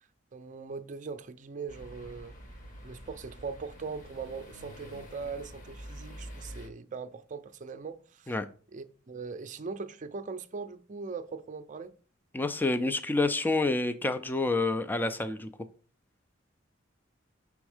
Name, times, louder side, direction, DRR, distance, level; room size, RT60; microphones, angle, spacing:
voice 1, 0.3-2.3 2.8-8.3 8.7-11.9, right 4 dB, 40° right, 0.5 m, -40 dB
sound 1, 1.7-6.7, equal, 45° left, 1.3 m, -47 dB
voice 2, 12.3-15.5, left 2 dB, 10° left, 0.4 m, -28 dB
6.2 x 3.5 x 4.9 m
head